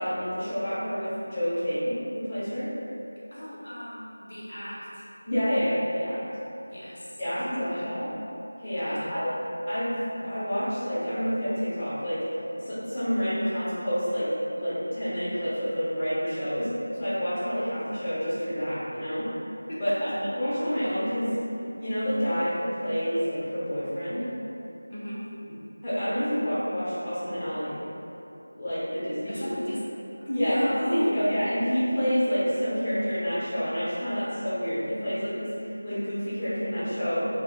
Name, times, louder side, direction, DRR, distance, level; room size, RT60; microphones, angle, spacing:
voice 1, 0.0-2.7 5.2-6.2 7.2-8.1 8.6-9.3 9.7-12.2 12.5-14.3 14.6-19.3 19.8-21.3 21.8-24.2 25.8-27.8 28.6-29.4 30.3-30.5 30.9-37.2, equal, 15° left, -14 dB, 0.9 m, -28 dB
voice 2, 3.3-5.1 6.7-8.0 8.8-9.2 19.7-20.2 24.9-25.2 29.2-29.8 30.2-31.3, equal, 60° left, -8 dB, 0.6 m, -34 dB
2.6 x 2.1 x 3.8 m, 2.9 s
figure-of-eight pair, 170°, 0 cm